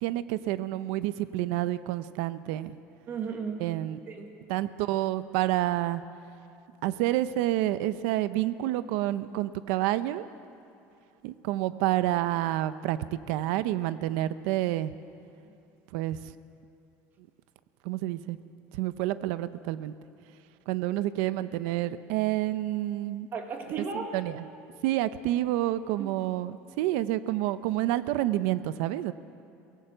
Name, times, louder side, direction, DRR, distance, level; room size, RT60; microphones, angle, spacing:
voice 1, 0.0-2.8 3.6-4.0 4.5-6.0 6.8-10.3 11.2-13.0 13.3-14.9 15.9-16.2 17.8-18.4 18.7-19.9 20.7-23.3 23.9-24.4 24.8-29.1, right 15 dB, 80° right, 13 dB, 0.7 m, -29 dB
voice 2, 3.1-3.6 4.1-4.3 23.3-24.1 26.0-26.3, right 5 dB, 35° right, 4 dB, 1.7 m, -35 dB
23.5 x 18.0 x 7.8 m, 2.7 s
cardioid pair, 170°, 6 cm